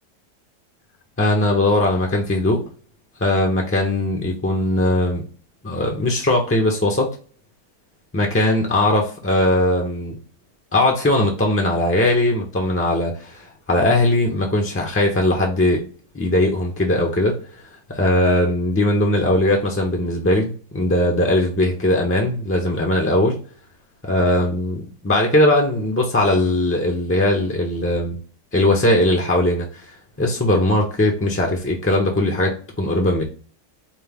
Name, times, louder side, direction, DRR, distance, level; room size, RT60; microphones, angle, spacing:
voice 1, 1.2-2.6 3.2-5.2 5.6-7.1 8.1-10.2 10.7-15.8 16.1-17.4 17.9-23.4 24.0-28.2 28.5-29.7 30.2-33.2, left 1 dB, 20° left, 0.3 m, -19 dB
5.3 x 2.1 x 3.5 m
omnidirectional pair, 1.8 m